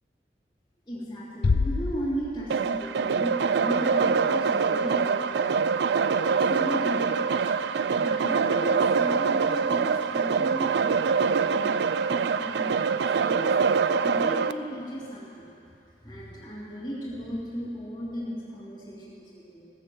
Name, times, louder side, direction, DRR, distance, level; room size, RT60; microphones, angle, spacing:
voice 1, 0.9-5.8 6.2-7.5 7.9-11.0 11.2-11.7 12.1-13.5 14.0-15.5 16.0-19.7, equal, 25° left, -9 dB, 2.9 m, -35 dB
Bass drum, 1.4-2.9, left 4 dB, 60° left, 0.4 m, -27 dB
sound 1, 2.5-14.5, right 5 dB, 80° right, 0.4 m, -24 dB
16.5 x 6.7 x 7.7 m, 2.7 s
head